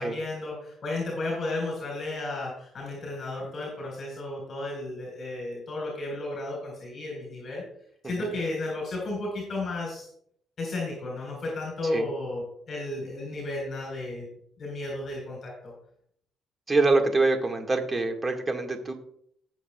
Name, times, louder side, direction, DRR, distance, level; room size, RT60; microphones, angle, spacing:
voice 1, 0.0-7.6 8.0-10.1 10.6-14.3 14.6-15.7, left 2 dB, 45° left, -3 dB, 4.3 m, -33 dB
voice 2, 16.7-18.9, right 3 dB, 25° right, 4 dB, 1.7 m, -25 dB
19.5 x 7.3 x 2.3 m, 0.67 s
cardioid pair, 115°, 0 cm